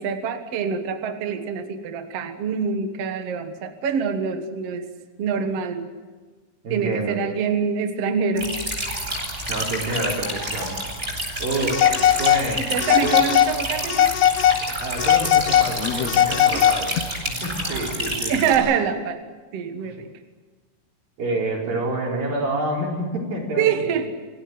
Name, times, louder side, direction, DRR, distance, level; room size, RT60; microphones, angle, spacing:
voice 1, 0.0-4.9 5.2-5.9 6.7-8.5 12.6-14.1 16.5-16.7 17.7-19.2 19.5-20.1 23.6-24.1, right 6 dB, 55° right, 7 dB, 2.2 m, -25 dB
voice 2, 6.6-7.2 9.5-10.7 11.4-12.7 13.0-13.2 14.6-17.0 17.3-18.5 19.8-20.0 21.2-24.0, right 1 dB, 90° right, -1 dB, 6.3 m, -28 dB
sound 1, 8.3-18.5, right 1 dB, 20° right, 7.2 m, -29 dB
Telephone, 11.7-12.4 12.8-13.5 13.9-14.6 15.0-17.0, left 11 dB, 70° left, 1.9 m, -18 dB
26.0 x 17.0 x 9.6 m, 1.3 s
omnidirectional pair, 4.0 m